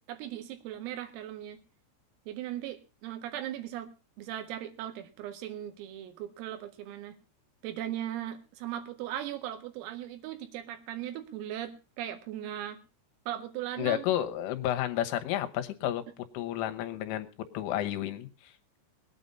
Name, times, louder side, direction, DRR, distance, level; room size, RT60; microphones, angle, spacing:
voice 1, 0.1-1.6 2.3-3.9 4.2-7.2 7.6-12.8 13.3-14.0, right 12 dB, 85° right, 7 dB, 4.4 m, -38 dB
voice 2, 13.8-17.3 17.6-18.5, left 12 dB, 80° left, 8 dB, 3.6 m, -31 dB
20.0 x 9.0 x 5.4 m, 0.33 s
omnidirectional pair, 5.9 m